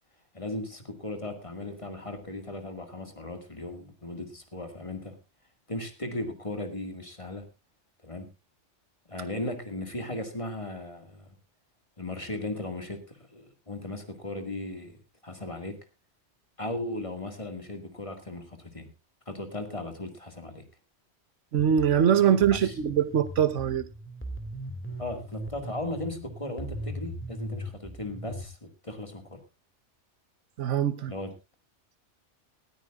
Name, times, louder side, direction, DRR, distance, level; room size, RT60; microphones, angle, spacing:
voice 1, 0.3-5.2 5.7-7.4 8.0-8.3 9.1-11.3 12.0-15.0 15.2-15.8 16.6-18.9 19.3-20.6 22.4-22.8 25.0-29.4 31.1-31.3, left 1 dB, 25° left, 2.1 m, -37 dB
voice 2, 21.5-23.9 30.6-31.1, right 9 dB, 85° right, 1.3 m, -23 dB
sound 1, 21.6-28.4, right 1 dB, 10° left, 2.1 m, -39 dB
19.0 x 14.0 x 2.4 m
omnidirectional pair, 1.2 m